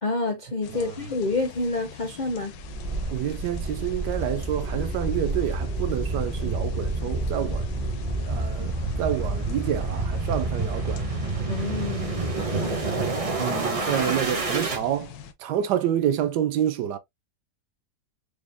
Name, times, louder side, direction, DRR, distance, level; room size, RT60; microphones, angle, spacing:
voice 1, 0.0-2.5 11.5-12.8, left 3 dB, 60° left, 0.4 m, -28 dB
sound 1, 0.6-15.3, left 7 dB, 80° left, 1.3 m, -43 dB
sound 2, 2.6-14.8, right 2 dB, 35° right, 0.6 m, -28 dB
voice 2, 3.1-7.6 8.2-8.7 9.0-11.0 12.8-13.0 13.3-15.1 15.4-17.0, right 10 dB, 75° right, 1.1 m, -28 dB
4.9 x 3.4 x 2.2 m
omnidirectional pair, 1.9 m